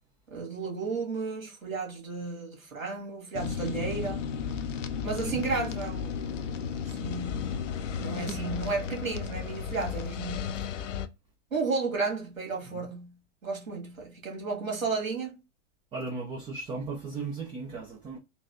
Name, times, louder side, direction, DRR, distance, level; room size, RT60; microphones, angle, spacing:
voice 1, 0.3-4.3 5.0-7.5 8.0-10.6 11.5-13.1 13.4-15.4, right 4 dB, 80° right, 1.9 m, -33 dB
sound 1, 3.3-11.1, left 7 dB, 70° left, 0.5 m, -34 dB
voice 2, 15.9-18.2, right 4 dB, 15° right, 0.5 m, -36 dB
3.9 x 2.6 x 2.5 m
figure-of-eight pair, 100°, 39 cm